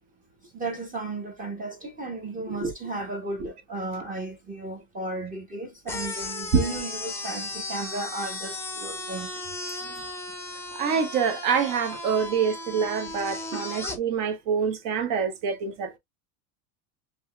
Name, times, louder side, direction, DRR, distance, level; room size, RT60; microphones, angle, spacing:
voice 1, 0.5-9.3 13.5-13.7, right 2 dB, 15° right, 1.1 m, -34 dB
sound 1, 5.9-14.0, left 2 dB, 5° left, 0.8 m, -36 dB
voice 2, 10.7-16.0, right 6 dB, 45° right, 1.4 m, -26 dB
5.3 x 3.0 x 2.2 m
supercardioid pair, 130°, 46 cm